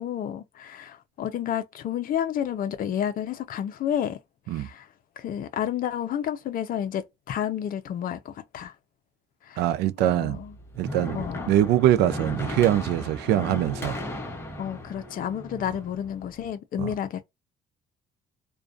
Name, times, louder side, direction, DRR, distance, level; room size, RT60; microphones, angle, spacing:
voice 1, 0.0-4.2 4.5-4.9 5.2-8.7 9.4-9.6 10.0-10.5 11.1-11.5 14.6-17.2, left 9 dB, 55° left, 0.6 m, -30 dB
voice 2, 9.6-10.4 10.8-11.2 11.5-14.0 16.8-16.9, right 12 dB, 80° right, 0.4 m, -23 dB
sound 1, 10.3-16.5, left 1 dB, 15° left, 0.9 m, -36 dB
2.4 x 2.2 x 2.4 m
cardioid pair, 110°, 17 cm